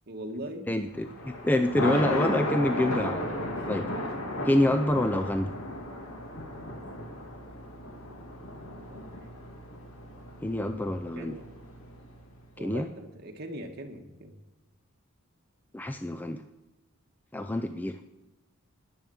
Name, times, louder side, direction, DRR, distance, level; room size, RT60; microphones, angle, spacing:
voice 1, 0.1-0.7 3.5-3.7 4.0-4.1 8.8-9.0 11.1-11.4 12.6-14.4, right 1 dB, 50° right, 3 dB, 1.6 m, -41 dB
voice 2, 0.7-3.2 3.7-3.9 4.5-5.5 10.4-11.3 12.6-12.9 15.7-16.4 17.3-18.0, left 1 dB, 10° left, 7 dB, 0.4 m, -27 dB
Thunder, 0.9-12.2, left 1 dB, 85° left, 1.9 m, -35 dB
10.5 x 10.5 x 7.0 m, 1.0 s
head